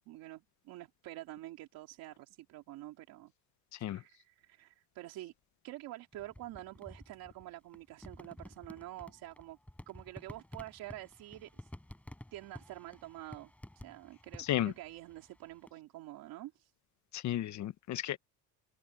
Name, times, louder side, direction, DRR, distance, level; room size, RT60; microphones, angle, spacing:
voice 1, 0.0-3.3 3.8-5.3 5.6-9.6 9.9-11.7 12.3-16.7, right 16 dB, 65° right, 2.9 m, -48 dB
voice 2, 3.7-4.0 14.4-14.7 17.1-18.2, left 13 dB, 50° left, 1.1 m, -34 dB
sound 1, 6.1-15.7, left 1 dB, 5° left, 7.2 m, -53 dB
cardioid pair, 125°, 37 cm